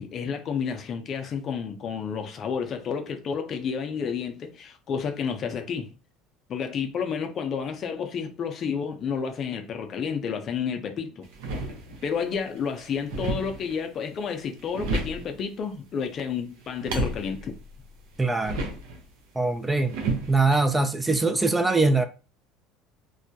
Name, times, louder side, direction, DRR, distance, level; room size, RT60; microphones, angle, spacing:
voice 1, 0.0-5.9 6.5-11.3 12.0-17.5, left 6 dB, 45° left, 0.5 m, -30 dB
sound 1, 11.2-12.2 12.6-13.8 14.4-15.4 16.6-19.1 19.9-20.6, right 2 dB, 75° right, 0.6 m, -32 dB
voice 2, 18.2-18.6 19.4-19.9 20.3-22.0, right 3 dB, 15° right, 0.3 m, -22 dB
2.2 x 2.1 x 2.7 m
hypercardioid pair, 85°, 0 cm